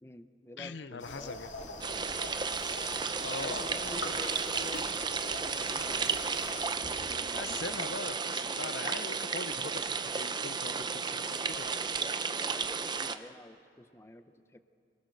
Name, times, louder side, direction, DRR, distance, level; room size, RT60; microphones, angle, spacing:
voice 1, 0.0-1.4 3.0-8.0 10.7-10.9 11.8-14.6, left 1 dB, 15° left, 10 dB, 0.8 m, -49 dB
voice 2, 0.6-1.5 3.2-3.7 6.3-6.4 7.1-11.8, left 4 dB, 75° left, 12 dB, 0.7 m, -42 dB
sound 1, 1.0-6.7, left 2 dB, 90° left, 2.6 m, -43 dB
Thunder, 1.6-12.2 12.4-12.7, left 1 dB, 35° left, 1.9 m, -56 dB
sound 2, 1.8-13.2, right 5 dB, 25° right, 0.6 m, -33 dB
27.0 x 20.5 x 6.6 m, 2.4 s
head